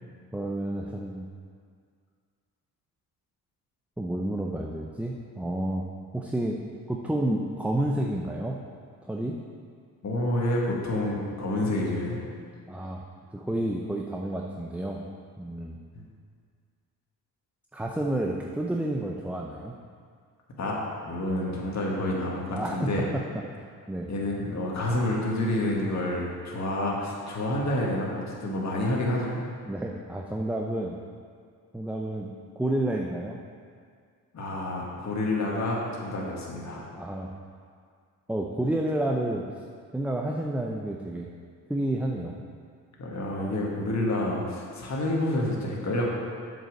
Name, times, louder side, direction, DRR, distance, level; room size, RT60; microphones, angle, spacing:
voice 1, 0.3-1.3 4.0-5.9 6.1-6.6 6.9-8.6 9.0-9.4 12.7-13.1 13.3-15.0 15.4-15.8 17.7-19.8 22.5-23.4 23.9-24.1 29.7-31.0 31.7-33.4 36.9-37.3 38.3-39.4 39.9-41.3 41.7-42.4 43.4-43.7, right 1 dB, 5° right, 0 dB, 0.6 m, -30 dB
voice 2, 10.0-12.2 15.9-16.0 20.6-20.8 21.1-23.0 24.1-29.4 34.3-36.8 43.0-46.1, left 1 dB, 45° left, -3 dB, 1.9 m, -28 dB
7.3 x 5.5 x 6.5 m, 2.1 s
supercardioid pair, 65°, 40 cm